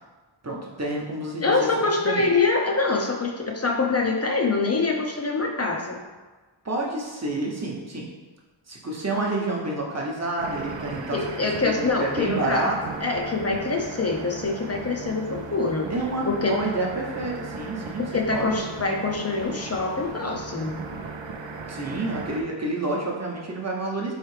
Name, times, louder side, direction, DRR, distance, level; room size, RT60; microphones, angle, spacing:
voice 1, 0.4-1.7 2.0-2.2 6.6-8.1 8.7-11.2 11.6-12.9 15.9-18.0 18.3-18.6 21.7-24.1, right 2 dB, 35° right, -2 dB, 0.9 m, -29 dB
voice 2, 1.4-6.0 11.1-12.7 13.0-15.9 16.3-16.6 18.1-20.9, left 3 dB, 30° left, 1 dB, 0.6 m, -25 dB
sound 1, 10.4-22.4, right 4 dB, 65° right, 0.5 m, -37 dB
4.4 x 3.2 x 3.2 m, 1.3 s
wide cardioid pair, 45°, 49 cm